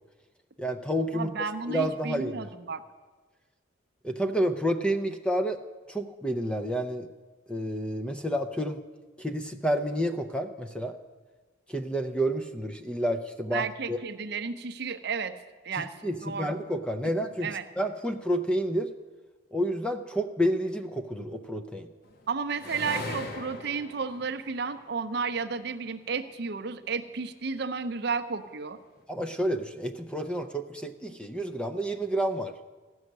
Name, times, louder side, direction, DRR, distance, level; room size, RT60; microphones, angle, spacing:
voice 1, 0.6-1.3 1.7-2.5 4.0-5.6 5.9-7.1 7.5-8.8 9.2-11.0 11.7-14.0 15.7-18.9 19.5-21.9 29.1-32.5, equal, 5° left, 8 dB, 0.5 m, -29 dB
voice 2, 1.1-2.8 13.5-15.4 15.6-15.9 16.2-16.6 17.4-17.6 22.3-28.8, right 5 dB, 55° right, 10 dB, 0.6 m, -32 dB
sound 1, 22.0-25.6 26.4-27.3, left 2 dB, 50° left, 1.1 m, -40 dB
14.0 x 6.4 x 9.3 m, 1.3 s
head